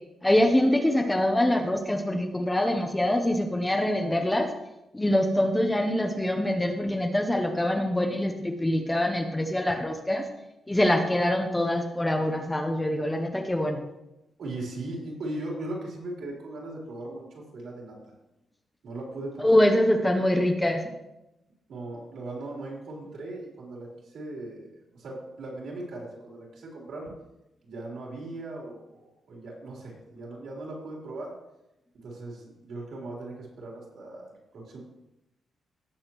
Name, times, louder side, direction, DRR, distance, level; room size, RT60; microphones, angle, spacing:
voice 1, 0.2-4.5 4.9-10.3 10.7-13.8 19.4-20.8, left 1 dB, 10° left, 4 dB, 0.8 m, -24 dB
voice 2, 14.4-18.0 18.8-19.6 21.7-27.1 27.6-31.3 31.9-34.3 34.5-34.8, right 2 dB, 65° right, -3 dB, 3.7 m, -38 dB
17.0 x 7.1 x 3.1 m, 0.92 s
wide cardioid pair, 170°, 0 cm